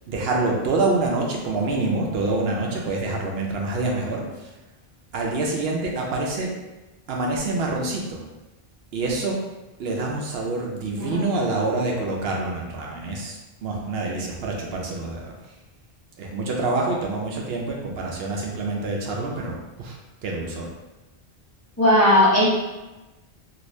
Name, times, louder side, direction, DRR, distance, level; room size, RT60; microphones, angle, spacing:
voice 1, 0.1-4.5 5.1-6.5 7.1-8.2 8.9-9.4 9.8-15.3 16.2-20.7, right 2 dB, 70° right, -1 dB, 0.8 m, -26 dB
voice 2, 21.8-22.5, left 1 dB, 15° left, -9 dB, 0.7 m, -17 dB
2.8 x 2.6 x 3.1 m, 1.1 s
omnidirectional pair, 1.1 m